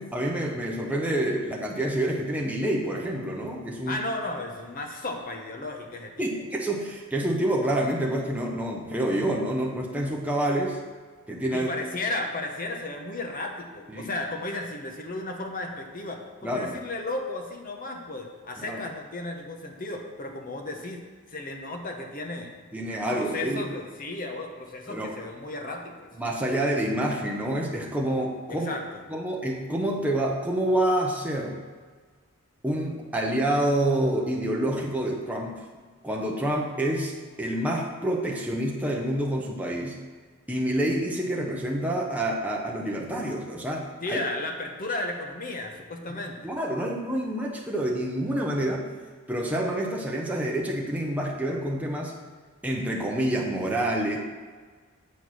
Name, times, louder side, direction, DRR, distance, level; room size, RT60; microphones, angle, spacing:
voice 1, 0.0-4.0 6.2-10.8 11.3-11.7 13.9-14.1 16.4-16.7 18.6-18.8 22.7-23.7 24.9-25.1 26.2-28.7 29.1-31.6 32.6-35.6 36.0-40.0 40.5-44.2 46.4-48.9 49.3-52.2 52.6-54.2, right 1 dB, 5° right, -2 dB, 0.8 m, -27 dB
voice 2, 3.9-6.3 11.5-22.5 23.1-26.1 28.5-29.0 44.0-46.5, left 2 dB, 40° left, 3 dB, 0.9 m, -34 dB
8.3 x 4.5 x 6.1 m, 1.5 s
head